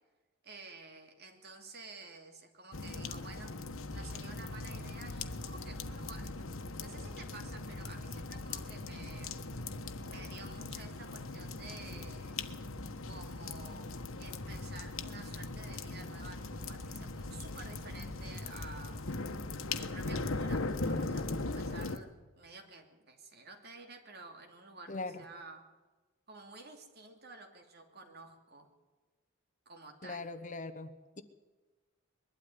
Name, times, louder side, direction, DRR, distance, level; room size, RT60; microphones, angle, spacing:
voice 1, 0.4-3.5 3.9-6.4 6.8-9.4 10.0-12.4 13.1-19.1 19.7-25.6 26.3-28.7 29.7-30.3, right 3 dB, 50° right, 4 dB, 2.8 m, -52 dB
sound 1, 2.7-22.0, left 3 dB, 80° left, 1.3 m, -39 dB
voice 2, 24.9-25.2 30.0-31.2, left 3 dB, 40° left, 11 dB, 1.0 m, -41 dB
21.5 x 12.5 x 9.7 m, 1.2 s
head